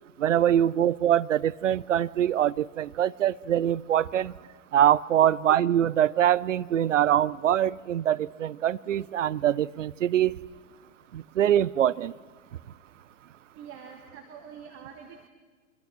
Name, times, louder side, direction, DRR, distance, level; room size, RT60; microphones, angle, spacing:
voice 1, 0.2-4.3 4.7-10.3 11.1-12.1, right 11 dB, 65° right, 19 dB, 0.9 m, -24 dB
voice 2, 13.5-15.3, right 7 dB, 30° right, 4 dB, 3.0 m, -45 dB
27.0 x 23.0 x 6.3 m, 1.5 s
figure-of-eight pair, 105°, 41 cm